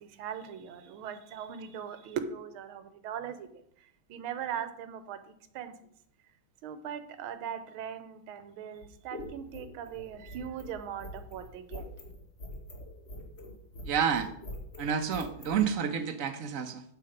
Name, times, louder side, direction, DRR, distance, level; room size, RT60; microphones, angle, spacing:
voice 1, 0.0-3.5 3.8-5.7 6.6-11.8, right 8 dB, 85° right, 1.6 m, -40 dB
sound 1, 8.7-15.6, left 1 dB, 35° left, 1.9 m, -44 dB
voice 2, 13.8-14.3 14.8-16.8, right 7 dB, 55° right, 1.0 m, -29 dB
8.7 x 7.8 x 5.1 m
omnidirectional pair, 2.2 m